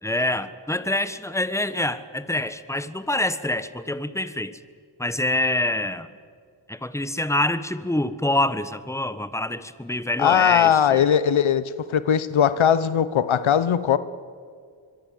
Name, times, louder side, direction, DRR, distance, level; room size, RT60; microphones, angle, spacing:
voice 1, 0.0-4.6 5.0-6.1 6.7-11.0, left 1 dB, 5° left, 13 dB, 1.5 m, -26 dB
voice 2, 10.2-14.0, left 9 dB, 75° left, 15 dB, 1.0 m, -19 dB
25.5 x 22.0 x 7.9 m, 2.1 s
cardioid pair, 45°, 48 cm